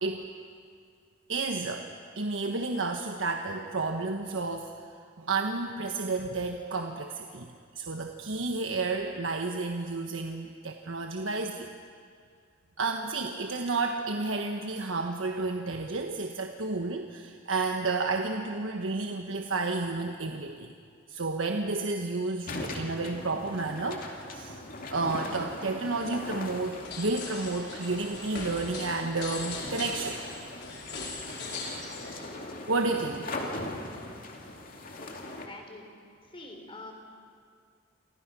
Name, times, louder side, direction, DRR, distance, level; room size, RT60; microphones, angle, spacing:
voice 1, 1.3-1.9 2.2-4.7 5.2-11.7 12.8-20.7 21.1-24.6 24.9-30.2 32.7-33.3, right 3 dB, 85° right, 3 dB, 1.3 m, -31 dB
sound 1, 22.5-35.5, left 2 dB, 45° left, 2.6 m, -40 dB
sound 2, 26.5-32.3, left 3 dB, 65° left, 4.8 m, -40 dB
voice 2, 35.0-35.9 36.3-36.9, left 2 dB, 30° left, 3 dB, 3.8 m, -46 dB
29.0 x 25.0 x 6.2 m, 2.2 s
head